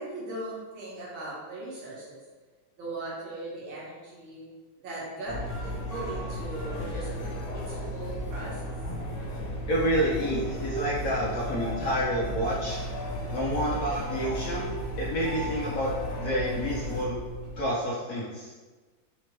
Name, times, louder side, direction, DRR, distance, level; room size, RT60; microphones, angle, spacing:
voice 1, 0.0-2.2 2.8-4.5 4.8-9.1, right 2 dB, 70° right, -6 dB, 1.9 m, -39 dB
sound 1, 5.2-17.1, equal, 90° left, 1.5 m, -36 dB
sound 2, 5.3-17.7, right 1 dB, 45° right, 1.0 m, -38 dB
voice 2, 9.7-12.8 13.3-14.7 15.0-15.9 16.2-17.1 17.6-18.5, equal, 65° left, -7 dB, 0.8 m, -29 dB
4.1 x 2.9 x 3.2 m, 1.3 s
omnidirectional pair, 2.3 m